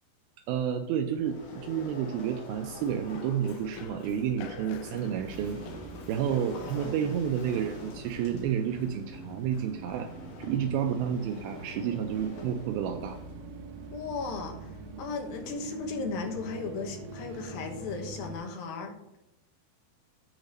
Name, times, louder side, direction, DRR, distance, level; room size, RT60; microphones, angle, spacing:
voice 1, 0.5-5.6 6.1-10.1 10.4-13.2, right 8 dB, 85° right, 5 dB, 2.1 m, -30 dB
Run, 1.1-12.6, left 6 dB, 90° left, 2.9 m, -50 dB
sound 1, 1.2-3.8 4.5-13.4, left 3 dB, 50° left, 2.4 m, -47 dB
sound 2, 5.1-18.4, right 3 dB, 65° right, 2.7 m, -44 dB
voice 2, 6.5-7.1 13.9-19.2, left 4 dB, 70° left, 3 dB, 2.5 m, -36 dB
9.4 x 4.0 x 6.5 m, 0.88 s
omnidirectional pair, 5.0 m